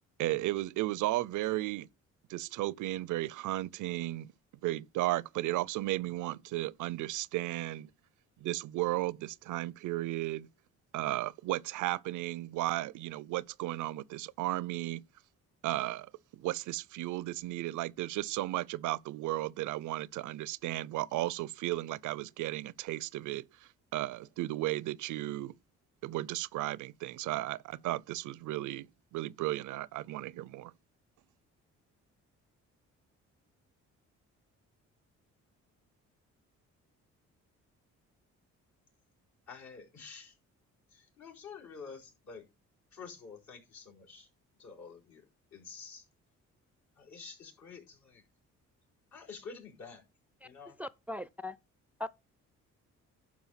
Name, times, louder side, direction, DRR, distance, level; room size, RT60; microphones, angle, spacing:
voice 1, 0.2-1.9 2.3-4.3 4.6-7.9 8.4-10.5 10.9-15.0 15.6-25.5 26.0-30.7, right 16 dB, 80° right, 0.5 m, -34 dB
voice 2, 39.5-40.4 40.9-42.4 42.9-44.3 44.6-46.1 47.0-48.2 49.1-50.0 50.4-50.8, left 5 dB, 65° left, 4.7 m, -49 dB
voice 3, 50.8-51.6 52.0-52.1, left 1 dB, 5° right, 0.4 m, -39 dB
11.5 x 4.8 x 5.7 m
cardioid pair, 90°, 30 cm